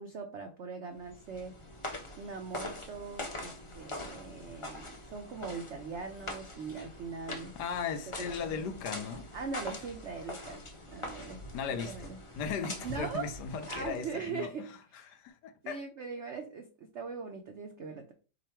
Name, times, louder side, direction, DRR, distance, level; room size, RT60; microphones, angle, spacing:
voice 1, 0.0-1.6 2.2-7.5 8.2-8.7 9.3-10.6 10.9-11.4 11.8-12.2 12.8-13.3 13.7-15.2 15.6-18.1, right 5 dB, 85° right, 0.6 m, -41 dB
sound 1, 1.0-14.3, left 2 dB, 55° left, 0.3 m, -43 dB
voice 2, 7.6-9.3 11.5-14.5 15.1-15.8, left 6 dB, 75° left, 1.1 m, -37 dB
5.0 x 2.4 x 4.3 m
omnidirectional pair, 2.0 m